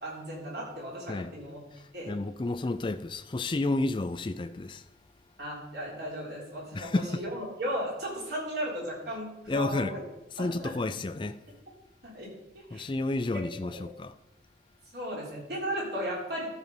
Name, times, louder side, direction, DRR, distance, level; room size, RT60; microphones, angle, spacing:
voice 1, 0.0-1.6 1.9-2.1 5.4-10.0 10.4-10.7 12.0-12.9 13.6-13.9 14.9-16.5, equal, 65° right, 3.8 m, -36 dB
voice 2, 1.7-4.8 6.7-7.2 9.5-9.9 10.3-11.4 12.7-14.1, left 2 dB, 25° left, 0.4 m, -31 dB
12.5 x 5.3 x 5.3 m
head